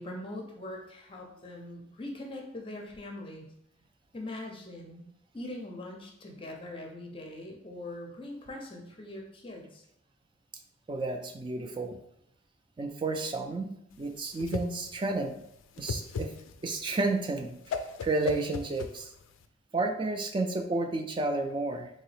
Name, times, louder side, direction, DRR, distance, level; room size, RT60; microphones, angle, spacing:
voice 1, 0.0-3.5 4.1-5.0 5.3-9.8, left 1 dB, 25° left, 1 dB, 0.5 m, -42 dB
voice 2, 10.9-12.0 12.8-15.4 15.8-16.3 16.6-19.1 19.7-21.9, right 3 dB, 25° right, 6 dB, 0.3 m, -31 dB
Whoosh swoosh swish, 13.9-19.4, left 5 dB, 90° left, 0.3 m, -38 dB
3.8 x 2.7 x 3.2 m, 0.77 s
head